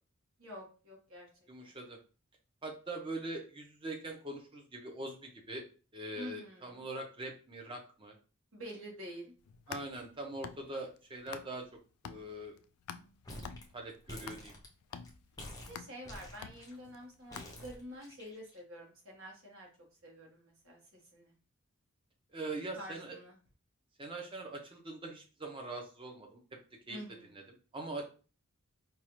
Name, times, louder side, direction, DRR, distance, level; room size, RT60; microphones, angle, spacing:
voice 1, 0.4-1.3 1.6-1.7 6.2-6.8 8.5-9.3 15.7-19.7 20.0-21.3 22.7-23.4 26.9-27.3, equal, 70° right, -1 dB, 1.4 m, -48 dB
voice 2, 1.5-2.0 2.6-5.6 5.9-8.2 9.7-11.7 12.0-12.6 13.7-14.5 22.3-23.2 24.0-26.4 26.9-27.0 27.3-28.0, right 2 dB, 25° right, 2 dB, 0.7 m, -42 dB
sound 1, 9.4-11.7 12.1-18.0, left 7 dB, 85° left, 0.3 m, -49 dB
sound 2, 13.2-13.6 13.9-15.1 15.4-16.7 17.3-18.6, left 1 dB, 15° left, 0.5 m, -48 dB
4.6 x 2.4 x 3.0 m, 0.36 s
head